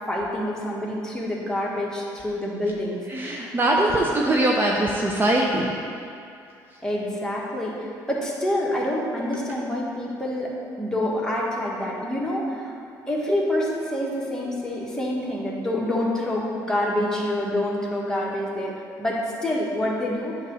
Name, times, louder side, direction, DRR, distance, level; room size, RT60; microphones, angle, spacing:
voice 1, 0.1-3.5 6.8-12.7 13.1-20.4, left 1 dB, 10° left, -4 dB, 1.6 m, -27 dB
voice 2, 3.1-5.7, right 1 dB, 25° right, -2 dB, 0.7 m, -22 dB
8.8 x 3.0 x 6.2 m, 2.6 s
cardioid pair, 90°, 8 cm